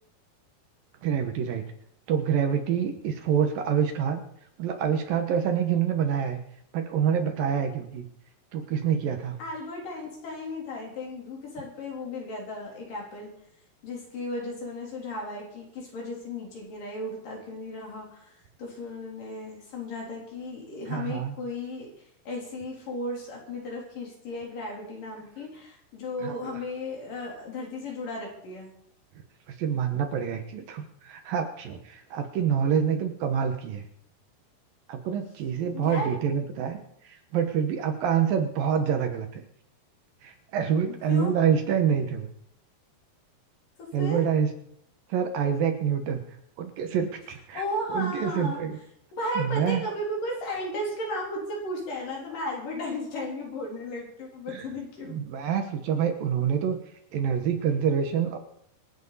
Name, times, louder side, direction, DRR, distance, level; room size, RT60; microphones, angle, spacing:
voice 1, 1.0-1.6 2.1-4.2 4.6-6.4 6.7-8.1 8.5-9.4 20.9-21.4 26.2-26.6 29.6-33.9 34.9-36.8 37.0-39.4 40.2-42.3 43.9-44.5 45.1-46.2 46.6-47.6 47.9-48.8 49.4-49.8 54.5-54.7 55.0-56.8 57.1-58.4, right 8 dB, 70° right, 6 dB, 2.8 m, -26 dB
voice 2, 9.4-13.3 13.8-18.3 18.6-21.9 22.3-28.7 35.7-36.2 41.1-41.4 43.8-44.3 47.5-48.6 49.1-55.1, left 1 dB, 55° left, -2 dB, 5.1 m, -35 dB
26.0 x 9.3 x 4.1 m, 0.70 s
omnidirectional pair, 4.6 m